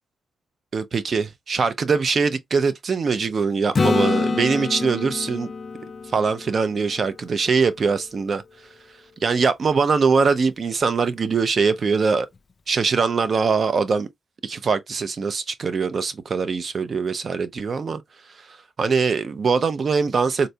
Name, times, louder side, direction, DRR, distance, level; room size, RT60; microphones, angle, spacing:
voice 1, 0.7-5.5 6.1-8.4 9.2-12.3 12.7-14.1 14.4-18.0 18.8-20.5, right 5 dB, 45° right, 0.5 m, -22 dB
Acoustic guitar / Strum, 3.7-7.5 12.4-12.5, left 4 dB, 40° left, 0.3 m, -26 dB
3.9 x 2.2 x 2.7 m
cardioid pair, 105°, 0 cm